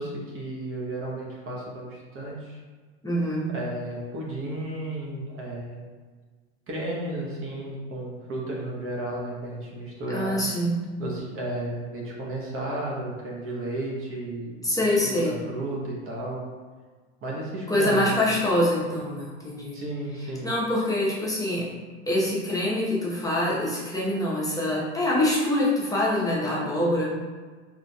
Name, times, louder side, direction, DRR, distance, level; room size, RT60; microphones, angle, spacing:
voice 1, 0.0-2.6 3.5-5.8 6.7-10.5 11.0-14.7 15.2-16.4 17.2-18.3 19.7-20.5, right 1 dB, 40° right, -3 dB, 0.9 m, -33 dB
voice 2, 3.0-3.6 10.1-10.9 14.6-15.3 17.7-19.8 20.4-21.7 22.1-27.1, left 1 dB, 10° left, -6 dB, 0.9 m, -25 dB
3.8 x 3.1 x 2.3 m, 1.4 s
hypercardioid pair, 80°, 34 cm